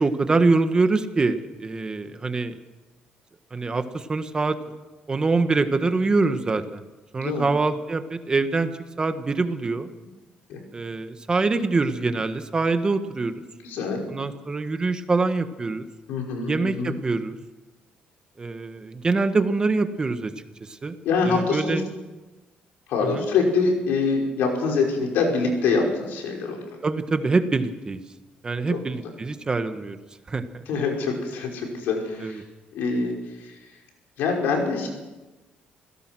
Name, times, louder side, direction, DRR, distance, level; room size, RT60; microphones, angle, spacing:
voice 1, 0.0-2.5 3.5-4.6 5.1-6.8 7.1-8.7 9.0-9.9 10.7-13.4 14.1-15.9 16.4-17.4 18.4-20.3 20.8-20.9 21.2-21.8 23.0-23.2 26.8-28.0 28.4-30.0 30.3-30.6 32.2-32.4, right 3 dB, 25° right, 9 dB, 1.4 m, -24 dB
voice 2, 13.6-14.0 16.1-17.0 21.0-21.8 22.9-26.6 28.7-28.8 30.7-32.4 32.7-33.6 34.2-34.9, left 4 dB, 85° left, 1 dB, 5.5 m, -25 dB
26.0 x 17.0 x 6.2 m, 1.1 s
cardioid pair, 110°, 3 cm